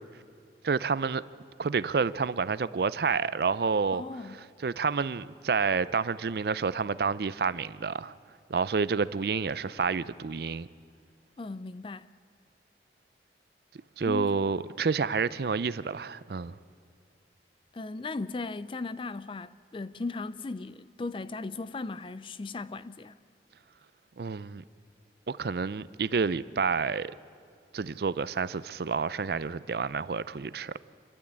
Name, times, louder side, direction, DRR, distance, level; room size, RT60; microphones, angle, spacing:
voice 1, 0.6-1.2 1.6-4.0 4.6-8.1 8.5-10.7 14.0-16.6 24.2-24.6 25.3-27.1 27.7-30.8, right 5 dB, 60° right, 0.5 m, -29 dB
voice 2, 3.9-4.5 11.4-12.1 14.1-14.6 17.7-23.2, left 3 dB, 30° left, 0.4 m, -37 dB
27.5 x 12.0 x 8.7 m
head